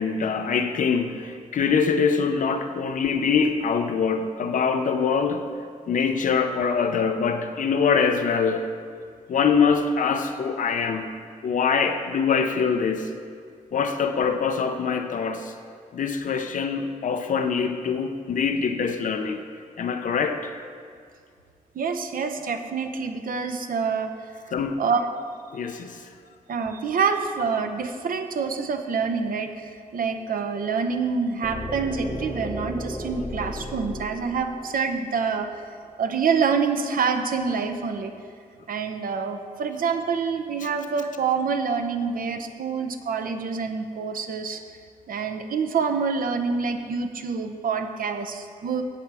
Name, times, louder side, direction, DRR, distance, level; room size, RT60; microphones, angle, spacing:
voice 1, 0.0-5.5 5.9-8.6 9.3-11.1 11.4-13.1 13.7-15.5 15.9-19.4 19.8-20.5 24.5-24.8 25.5-26.1 40.6-40.7, left 5 dB, 65° left, 7 dB, 0.6 m, -24 dB
voice 2, 21.7-24.1 24.8-25.1 26.5-35.5 36.0-38.1 38.7-44.6 45.1-48.8, right 5 dB, 80° right, 6 dB, 0.8 m, -26 dB
sound 1, 31.4-35.3, left 1 dB, ahead, 1.1 m, -34 dB
14.0 x 8.4 x 3.4 m, 2.2 s
wide cardioid pair, 170°, 14 cm